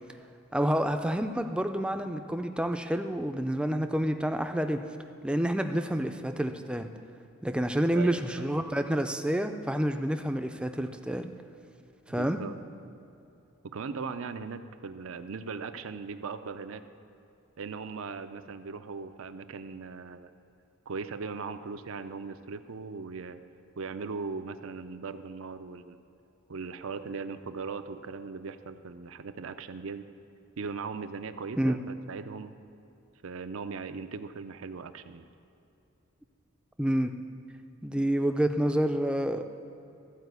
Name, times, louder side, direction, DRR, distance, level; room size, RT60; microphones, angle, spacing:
voice 1, 0.5-4.8 5.2-6.9 7.4-11.3 12.1-12.4 31.6-31.8 36.8-37.1 37.8-39.4, right 1 dB, 5° right, 7 dB, 0.4 m, -28 dB
voice 2, 7.9-8.4 12.1-12.6 13.6-16.8 17.6-20.3 20.9-23.4 23.8-26.0 26.5-30.1 30.6-32.5 33.2-35.2, right 4 dB, 70° right, 9 dB, 0.5 m, -39 dB
14.0 x 4.9 x 8.0 m, 2.8 s
head